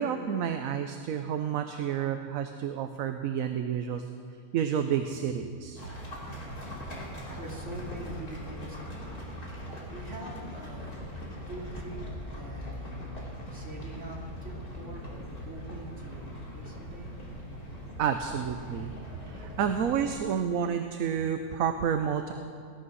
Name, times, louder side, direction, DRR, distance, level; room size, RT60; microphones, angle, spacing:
voice 1, 0.0-4.1 4.5-5.8 18.0-22.3, right 8 dB, 70° right, 7 dB, 1.1 m, -30 dB
sound 1, 5.8-20.1, equal, 85° left, 3.9 m, -41 dB
voice 2, 6.4-9.2 9.9-11.0 11.5-13.2 13.5-17.2, right 1 dB, 50° right, -3 dB, 3.4 m, -44 dB
19.5 x 11.5 x 6.3 m, 2.2 s
omnidirectional pair, 1.6 m